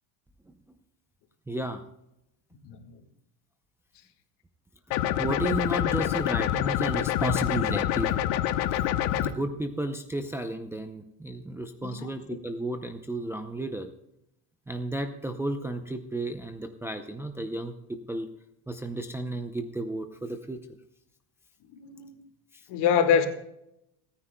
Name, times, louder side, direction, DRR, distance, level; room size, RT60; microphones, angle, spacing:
voice 1, 1.5-1.8 5.2-8.2 9.1-13.9 14.7-17.7 18.1-18.3 18.7-20.6 22.5-22.6, right 1 dB, 5° right, 0.5 m, -33 dB
voice 2, 2.6-3.0 11.8-12.2 21.7-22.2 22.7-23.3, left 7 dB, 60° left, 1.9 m, -25 dB
sound 1, 4.9-9.3, left 12 dB, 85° left, 1.0 m, -26 dB
29.0 x 9.9 x 2.2 m
cardioid pair, 135°, 45 cm